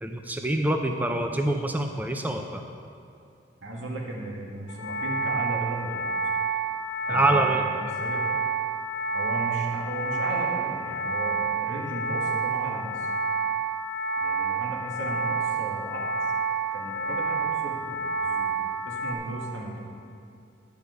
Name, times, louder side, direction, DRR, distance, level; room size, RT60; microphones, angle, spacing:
voice 1, 0.0-2.6 7.1-7.6, right 1 dB, 10° right, 4 dB, 0.4 m, -25 dB
voice 2, 3.6-6.1 7.1-8.2 9.1-13.1 14.2-16.3 16.7-18.5 18.8-19.9, right 2 dB, 85° right, -2 dB, 1.9 m, -35 dB
sound 1, 4.7-19.1, right 4 dB, 55° left, 1.2 m, -29 dB
10.5 x 4.9 x 8.0 m, 2.5 s
head